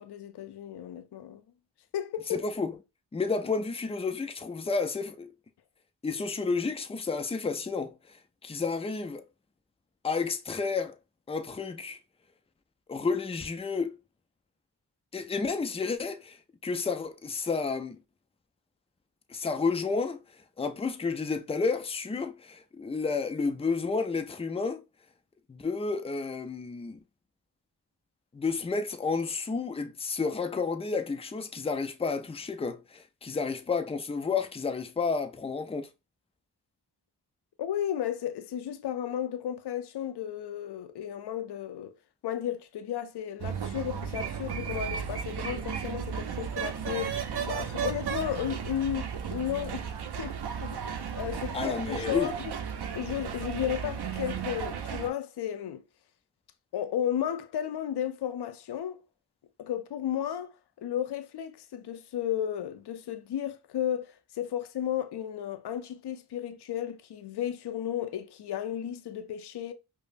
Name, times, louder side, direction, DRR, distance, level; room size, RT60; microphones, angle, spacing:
voice 1, 0.0-1.4 1.9-2.4 37.6-41.9 42.2-49.8 50.2-50.4 50.6-52.5 52.9-55.8 56.7-59.0 59.6-69.7, left 10 dB, 65° left, 0.5 m, -34 dB
voice 2, 2.3-2.7 3.1-5.3 6.0-9.2 10.0-10.9 11.3-12.0 12.9-14.0 15.1-16.4 16.6-18.0 19.3-20.2 20.6-24.8 25.5-27.0 28.3-35.9 51.5-52.3, left 4 dB, 15° left, 0.4 m, -31 dB
sound 1, 43.4-55.1, right 7 dB, 65° right, 0.6 m, -34 dB
5.0 x 2.0 x 2.5 m
cardioid pair, 55°, 42 cm